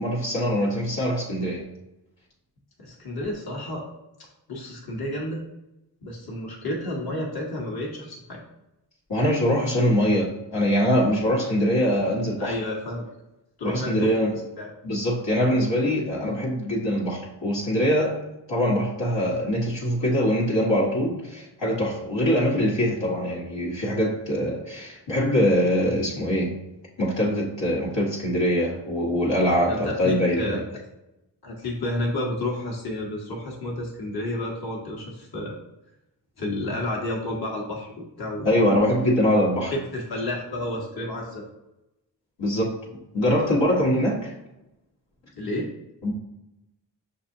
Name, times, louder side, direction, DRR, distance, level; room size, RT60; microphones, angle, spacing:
voice 1, 0.0-1.7 9.1-12.5 13.6-14.3 14.8-18.2 18.5-26.6 27.0-30.6 38.4-39.7 42.4-42.7 43.1-44.3 46.0-46.1, equal, 75° left, -5 dB, 1.3 m, -23 dB
voice 2, 2.8-3.8 4.5-5.5 6.0-8.4 12.4-13.1 13.6-14.1 14.6-14.7 29.7-30.6 31.4-35.5 36.4-38.5 39.7-41.5 45.4-45.7, left 1 dB, 55° left, -2 dB, 1.2 m, -31 dB
6.0 x 2.7 x 2.6 m, 0.92 s
cardioid pair, 45°, 45 cm